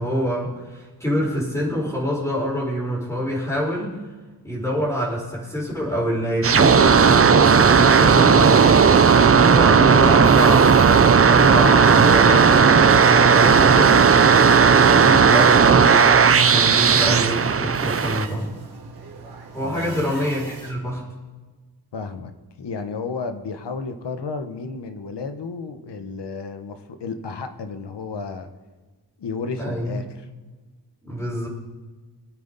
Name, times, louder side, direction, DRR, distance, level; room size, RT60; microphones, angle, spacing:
voice 1, 0.0-3.9 4.4-8.8 9.4-10.9 11.3-14.1 14.7-18.5 19.5-21.0 29.6-30.0 31.0-31.5, equal, 5° left, -6 dB, 4.8 m, -25 dB
sound 1, 6.4-18.3, right 6 dB, 35° right, 0.5 m, -14 dB
sound 2, 9.0-20.7, right 4 dB, 65° right, 2.4 m, -42 dB
voice 2, 19.6-20.1 21.9-22.3 22.6-28.5 29.2-30.3, left 4 dB, 90° left, 8 dB, 1.2 m, -32 dB
22.5 x 8.9 x 4.1 m, 1.3 s
wide cardioid pair, 115°, 40 cm